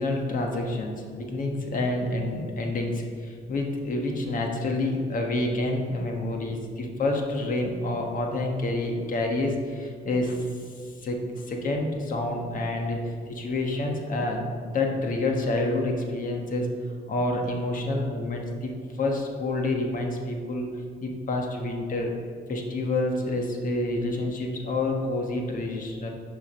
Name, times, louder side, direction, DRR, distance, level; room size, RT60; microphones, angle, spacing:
voice 1, 0.0-16.7 17.1-18.7 19.0-20.7 21.0-22.1 22.5-26.1, left 2 dB, 50° left, 2 dB, 1.3 m, -28 dB
6.9 x 5.0 x 6.9 m, 2.1 s
cardioid pair, 130°, 18 cm